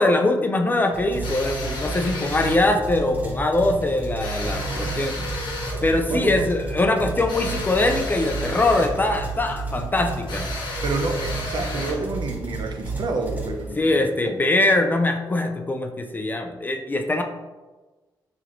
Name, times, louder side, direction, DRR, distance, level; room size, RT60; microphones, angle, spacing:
voice 1, 0.0-5.1 5.8-10.5 13.8-17.2, left 2 dB, 20° left, 4 dB, 0.3 m, -22 dB
sound 1, 0.9-14.1, right 3 dB, 20° right, 0.8 m, -32 dB
sound 2, 1.2-2.7 4.2-5.9 7.3-9.0 10.3-12.1, left 2 dB, 85° left, 0.9 m, -33 dB
voice 2, 4.6-5.3 6.1-6.4 10.8-14.0, right 3 dB, 60° right, 3 dB, 0.5 m, -29 dB
4.3 x 2.9 x 2.5 m, 1.2 s
cardioid pair, 105°, 8 cm